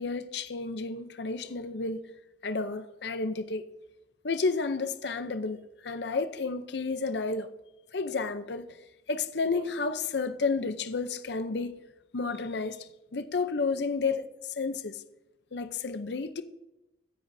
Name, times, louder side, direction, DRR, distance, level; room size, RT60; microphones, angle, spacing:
voice 1, 0.0-2.0 2.4-3.7 4.2-7.5 7.9-8.8 9.1-11.8 12.1-15.0 15.5-16.4, left 4 dB, 65° left, 0.6 m, -31 dB
22.0 x 10.0 x 2.7 m
head